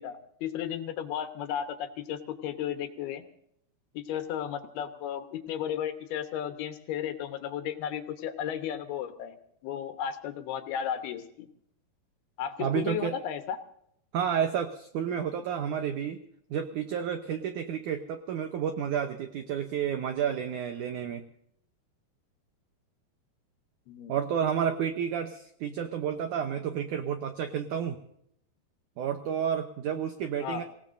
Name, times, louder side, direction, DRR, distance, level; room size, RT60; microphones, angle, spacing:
voice 1, 0.0-3.2 3.9-9.4 9.6-11.5 12.4-13.6 23.9-24.1 30.4-30.6, left 9 dB, 75° left, 8 dB, 3.0 m, -34 dB
voice 2, 12.6-13.2 14.1-16.2 16.5-21.2 24.1-28.0 29.0-30.6, right 8 dB, 80° right, 7 dB, 1.8 m, -30 dB
26.0 x 17.0 x 2.6 m, 0.71 s
omnidirectional pair, 4.7 m